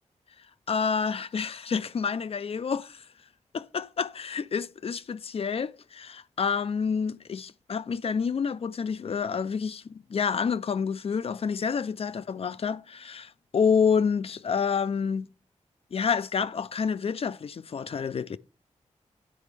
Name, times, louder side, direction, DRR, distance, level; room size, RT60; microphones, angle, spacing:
voice 1, 0.7-3.0 3.5-15.3 15.9-18.4, left 6 dB, 50° left, 0.4 m, -28 dB
10.0 x 4.0 x 3.3 m
cardioid pair, 60°, 13 cm